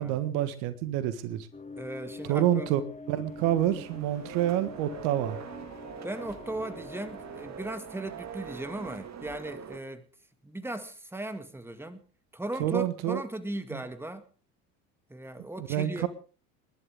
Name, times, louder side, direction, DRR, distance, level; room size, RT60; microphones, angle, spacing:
voice 1, 0.0-1.5 2.3-2.8 3.1-5.4 12.6-13.2 13.7-13.8 15.7-16.1, right 12 dB, 60° right, 1.7 m, -27 dB
sound 1, 1.5-7.6, left 3 dB, 15° left, 2.7 m, -45 dB
voice 2, 1.8-2.7 6.0-10.1 10.4-12.0 12.3-14.2 15.1-16.1, right 1 dB, 5° right, 2.0 m, -37 dB
sound 2, 3.3-9.8, right 7 dB, 35° right, 2.1 m, -44 dB
29.0 x 11.5 x 3.6 m
hypercardioid pair, 75°, 46 cm